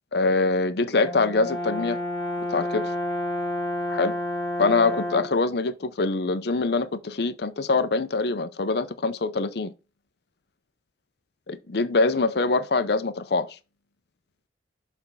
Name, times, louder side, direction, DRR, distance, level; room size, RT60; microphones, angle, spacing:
voice 1, 0.1-2.0 2.5-2.9 3.9-4.1 4.6-9.7 11.5-13.6, left 3 dB, 60° left, 0.6 m, -24 dB
Brass instrument, 1.0-5.4, left 1 dB, 20° left, 1.4 m, -29 dB
6.9 x 3.5 x 5.4 m
head